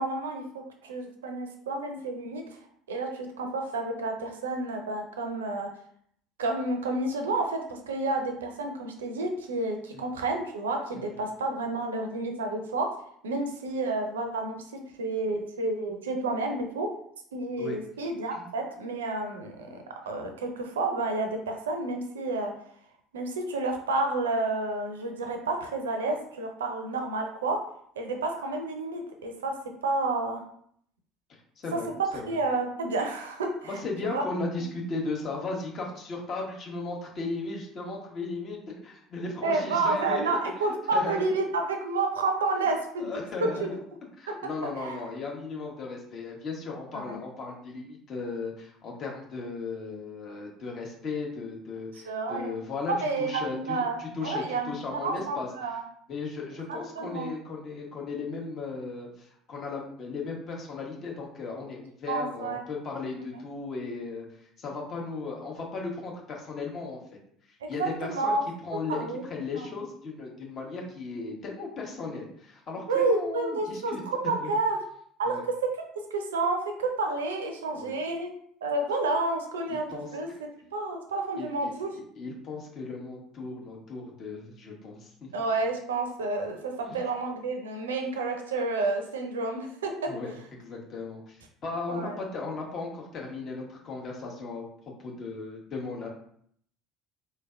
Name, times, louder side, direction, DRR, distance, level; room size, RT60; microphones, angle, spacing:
voice 1, 0.0-2.4 2.9-5.7 6.4-12.9 13.2-16.9 17.3-22.5 23.1-27.6 28.0-29.5 29.8-30.4 31.7-31.8 32.1-34.3 39.4-43.1 43.4-43.7 44.3-44.4 44.8-45.0 46.9-47.2 52.0-52.6 52.9-55.8 57.0-57.3 62.1-62.6 63.1-63.2 67.6-68.4 68.9-69.2 69.6-69.7 72.9-74.8 75.2-75.4 76.0-78.3 78.6-80.3 80.7-82.0 85.3-90.1 91.9-92.2, right 2 dB, 75° right, 4 dB, 0.5 m, -30 dB
voice 2, 31.6-32.4 33.7-40.4 40.9-41.4 43.0-43.8 44.2-52.9 53.2-55.5 56.1-67.2 67.7-68.4 68.6-69.0 69.3-74.0 74.4-74.5 75.2-75.4 77.7-78.0 79.7-80.4 81.4-81.7 82.2-85.3 86.8-87.0 90.1-94.7 95.0-96.1, left 3 dB, 40° left, -1 dB, 1.2 m, -36 dB
4.3 x 3.2 x 2.4 m, 0.65 s
figure-of-eight pair, 60°, 0 cm